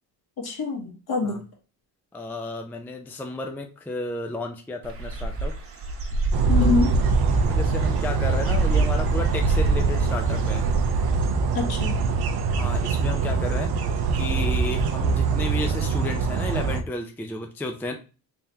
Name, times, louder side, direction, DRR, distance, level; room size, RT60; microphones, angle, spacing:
voice 1, 0.4-1.4 6.5-6.9 11.5-12.0, left 4 dB, 60° left, 1 dB, 1.5 m, -25 dB
voice 2, 2.1-5.5 6.6-6.9 7.5-10.6 12.6-17.9, left 1 dB, 5° left, 4 dB, 0.4 m, -33 dB
Dog / Bird, 4.8-11.1, right 2 dB, 30° right, 1.0 m, -26 dB
sound 1, 6.3-16.8, right 4 dB, 60° right, 0.7 m, -24 dB
3.5 x 3.3 x 2.8 m, 0.35 s
cardioid pair, 95°, 43 cm